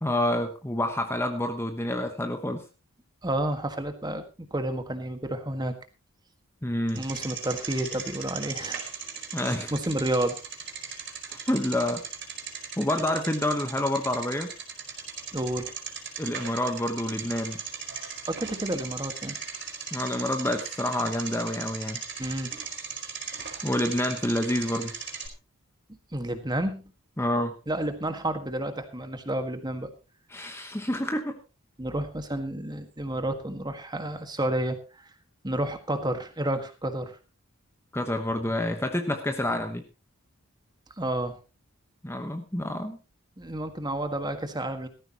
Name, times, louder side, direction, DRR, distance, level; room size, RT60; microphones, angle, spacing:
voice 1, 0.0-2.6 6.6-7.0 9.3-9.7 11.3-12.0 12.8-14.5 16.2-17.6 19.9-22.0 23.6-24.9 27.2-27.5 30.3-31.4 37.9-39.8 42.0-43.0, left 1 dB, 10° left, 5 dB, 1.1 m, -28 dB
voice 2, 3.2-4.2 4.5-5.8 6.9-8.8 9.7-10.3 15.3-15.7 18.3-19.4 22.2-22.5 26.1-26.8 27.7-29.9 31.8-35.1 35.4-37.2 41.0-41.4 43.4-44.9, right 1 dB, 20° right, 7 dB, 1.6 m, -30 dB
Bicycle, 6.9-25.3, right 6 dB, 50° right, 4.5 m, -38 dB
17.0 x 14.0 x 3.0 m, 0.31 s
head